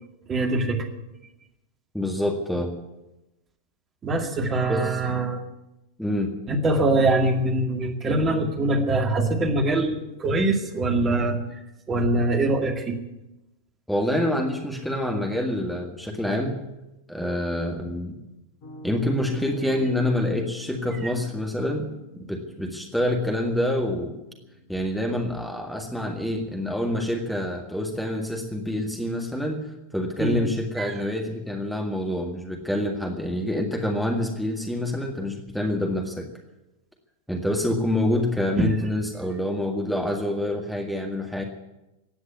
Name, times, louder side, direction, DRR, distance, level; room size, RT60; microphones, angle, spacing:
voice 1, 0.3-0.9 4.0-5.4 6.5-11.4 11.9-13.0 30.2-30.4 30.8-31.0 38.6-38.7, right 2 dB, 25° right, 4 dB, 2.1 m, -23 dB
voice 2, 1.9-2.7 4.7-5.0 6.0-6.3 13.9-16.6 17.1-18.2 18.8-21.9 22.1-24.2 24.7-29.6 29.9-36.3 37.3-41.4, left 1 dB, ahead, 2 dB, 1.9 m, -27 dB
Piano, 18.6-26.5, left 1 dB, 40° left, 3.7 m, -45 dB
16.0 x 9.5 x 9.6 m, 0.96 s
figure-of-eight pair, 90°, 0 cm